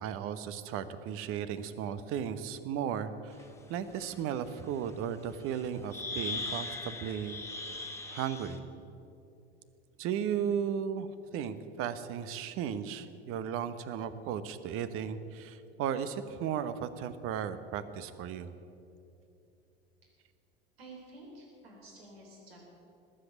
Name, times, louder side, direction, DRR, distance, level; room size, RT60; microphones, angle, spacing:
voice 1, 0.0-3.4 3.7-7.4 8.1-8.6 10.0-18.5, right 8 dB, 45° right, 13 dB, 1.0 m, -35 dB
sound 1, 3.4-3.5 4.0-4.1 5.5-5.6 5.9-8.6, left 3 dB, 10° left, 1.7 m, -39 dB
voice 2, 20.8-22.6, right 2 dB, 75° right, -1 dB, 3.8 m, -51 dB
19.5 x 8.0 x 8.5 m, 2.7 s
figure-of-eight pair, 75°, 31 cm